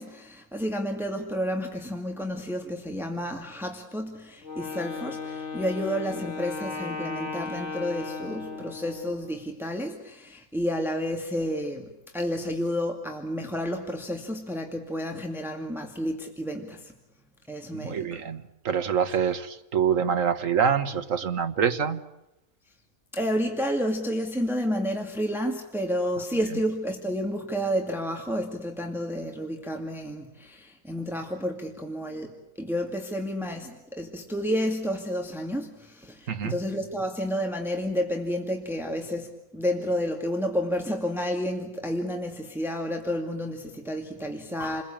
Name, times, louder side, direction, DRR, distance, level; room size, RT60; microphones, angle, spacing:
voice 1, 0.0-16.9 17.5-18.2 23.1-32.3 32.6-44.8, equal, ahead, 2 dB, 2.2 m, -30 dB
Wind instrument woodwind instrument, 4.4-9.3, left 4 dB, 50° left, 3.3 m, -36 dB
voice 2, 17.7-22.0 36.3-36.6, right 7 dB, 65° right, 9 dB, 1.7 m, -26 dB
29.5 x 21.0 x 8.9 m, 0.90 s
omnidirectional pair, 1.5 m